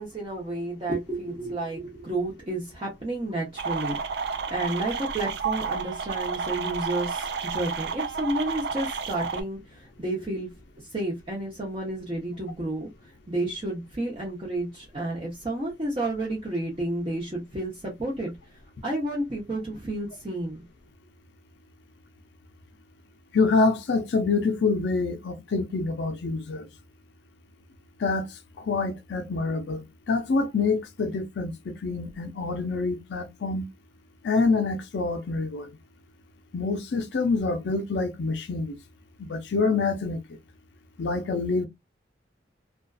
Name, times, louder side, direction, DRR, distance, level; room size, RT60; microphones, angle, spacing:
voice 1, 0.0-10.5 10.8-20.6, right 1 dB, 30° right, 0.7 m, -31 dB
sound 1, 3.6-9.4, right 5 dB, 65° right, 0.4 m, -31 dB
voice 2, 23.3-26.7 28.0-33.7 34.2-35.7 36.5-38.8 39.2-40.2 41.0-41.7, left 4 dB, 70° left, 0.4 m, -26 dB
2.5 x 2.3 x 2.3 m
head